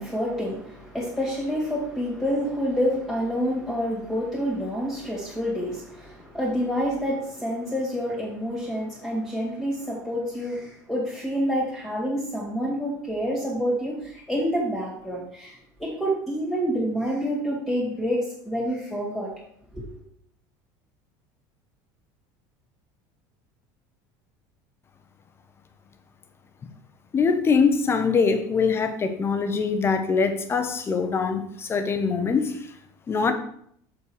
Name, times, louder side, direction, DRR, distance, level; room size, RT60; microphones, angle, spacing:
voice 1, 0.0-19.3 19.7-19.8, equal, ahead, -4 dB, 2.4 m, -28 dB
voice 2, 27.1-32.7 33.1-33.3, left 5 dB, 25° left, 8 dB, 0.8 m, -23 dB
6.8 x 5.5 x 4.8 m, 0.66 s
cardioid pair, 140°, 10 cm